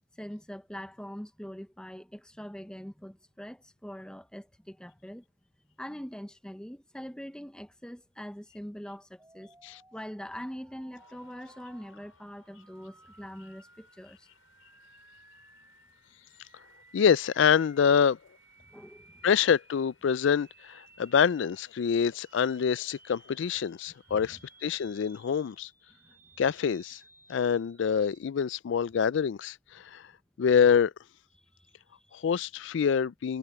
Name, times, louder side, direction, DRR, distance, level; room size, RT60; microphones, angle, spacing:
voice 1, 0.1-5.2 5.8-9.5 9.9-14.3 18.7-19.1 24.3-24.4 26.0-26.1 31.6-32.2, equal, 5° left, 0.7 m, -43 dB
sound 1, 9.2-28.2, right 2 dB, 10° right, 3.1 m, -59 dB
sound 2, 10.9-25.7, left 5 dB, 80° left, 5.5 m, -68 dB
voice 2, 16.9-18.2 19.2-25.7 26.4-27.0 27.3-30.0 30.4-30.9 32.1-33.4, left 7 dB, 65° left, 0.3 m, -26 dB
head